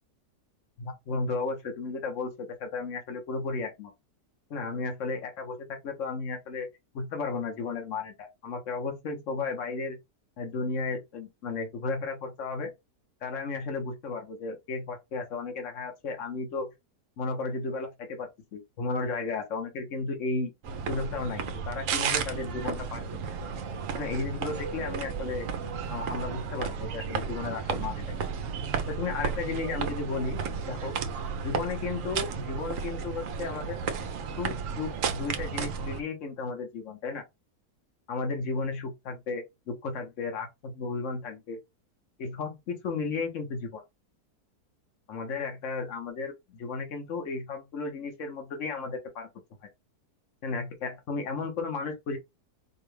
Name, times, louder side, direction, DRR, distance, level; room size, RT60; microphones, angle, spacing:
voice 1, 0.8-3.9 4.5-6.7 6.9-10.0 10.4-12.7 13.2-16.7 17.2-20.5 20.9-23.1 23.9-25.5 25.9-28.0 28.9-31.0 31.4-33.8 34.4-37.2 38.1-41.6 42.2-43.8 45.1-49.3 50.4-52.2, left 4 dB, 50° left, 1.4 m, -34 dB
sound 1, 20.6-36.0, right 6 dB, 65° right, 0.9 m, -33 dB
4.6 x 2.4 x 3.2 m
omnidirectional pair, 1.7 m